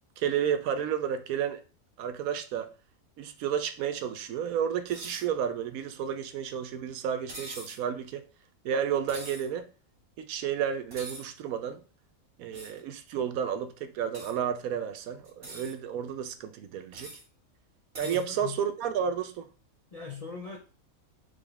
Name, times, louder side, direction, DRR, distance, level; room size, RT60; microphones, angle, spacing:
voice 1, 0.2-1.6 2.0-2.7 3.2-8.2 8.6-9.7 10.2-11.8 12.4-17.2 18.0-19.5, right 8 dB, 80° right, 1.0 m, -31 dB
sound 1, 4.9-5.3 7.3-7.8 9.1-9.5 10.9-11.3 12.5-12.8 14.1-14.3 15.2-15.7 16.9-17.2 17.9-18.2, right 1 dB, 40° right, 1.7 m, -43 dB
voice 2, 18.0-18.6 19.9-20.6, left 4 dB, 50° left, 0.4 m, -40 dB
3.8 x 3.5 x 3.4 m
omnidirectional pair, 1.5 m